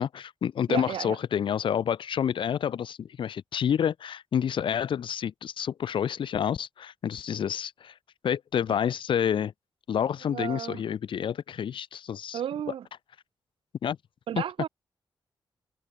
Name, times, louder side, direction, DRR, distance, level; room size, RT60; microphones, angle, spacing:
voice 1, 0.0-7.9 8.2-9.5 9.9-12.4 13.8-14.0, left 8 dB, 70° left, 0.9 m, -29 dB
voice 2, 0.7-1.2 10.3-10.8 12.3-12.9 14.3-14.7, right 10 dB, 85° right, 0.5 m, -32 dB
open air
wide cardioid pair, 155°, 9 cm